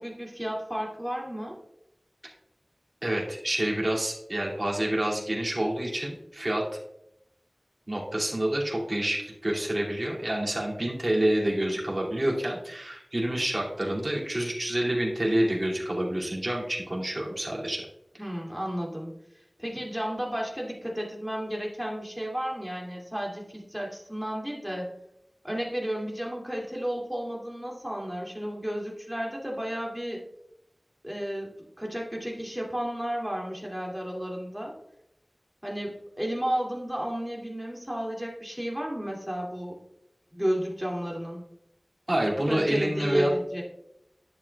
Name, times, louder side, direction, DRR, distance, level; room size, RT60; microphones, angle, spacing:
voice 1, 0.0-1.5 18.2-19.1 19.6-24.9 25.4-30.2 31.0-34.7 35.6-39.7 40.3-41.4 42.5-43.6, equal, 10° right, -2 dB, 2.6 m, -33 dB
voice 2, 3.0-6.6 7.9-17.8 42.1-43.3, right 1 dB, 50° right, -3 dB, 2.6 m, -28 dB
11.0 x 7.5 x 2.4 m, 0.78 s
wide cardioid pair, 45°, 0 cm